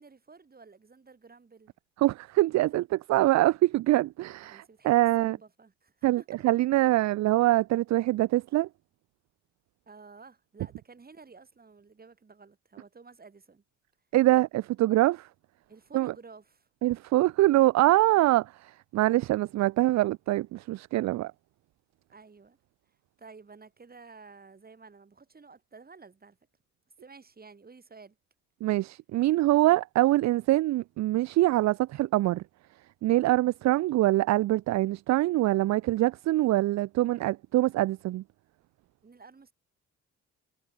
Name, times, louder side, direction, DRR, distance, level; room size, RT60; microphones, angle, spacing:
voice 1, 0.0-1.7 4.4-6.3 9.9-13.6 15.7-16.7 22.1-22.6 23.2-26.4 27.0-28.2 39.0-39.5, right 4 dB, 30° right, 7.3 m, -52 dB
voice 2, 2.0-5.4 6.0-8.7 14.1-15.3 15.9-16.1 16.8-21.3 28.6-32.4 33.0-38.2, right 16 dB, 65° right, 0.5 m, -24 dB
cardioid pair, 90°, 30 cm